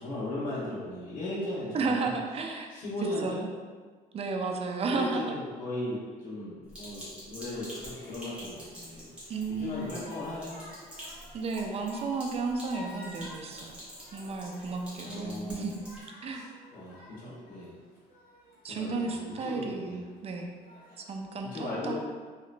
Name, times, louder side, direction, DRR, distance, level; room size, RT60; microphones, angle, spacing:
voice 1, 0.0-2.2 2.7-3.5 5.0-10.6 15.0-15.7 16.3-16.5 16.7-17.8 18.6-20.0 21.4-21.9, left 1 dB, 55° left, -8 dB, 1.1 m, -37 dB
voice 2, 1.7-2.7 3.2-3.4 4.1-5.3 9.3-9.9 11.3-13.8 14.1-15.7 16.2-16.5 18.6-20.5 21.0-21.9, right 4 dB, 35° right, 3 dB, 0.4 m, -33 dB
Sink (filling or washing), 6.7-16.0, equal, 5° right, 1.3 m, -47 dB
sound 1, 7.5-21.1, left 2 dB, 75° left, 1.5 m, -52 dB
3.1 x 2.9 x 2.5 m, 1.5 s
cardioid pair, 110°, 17 cm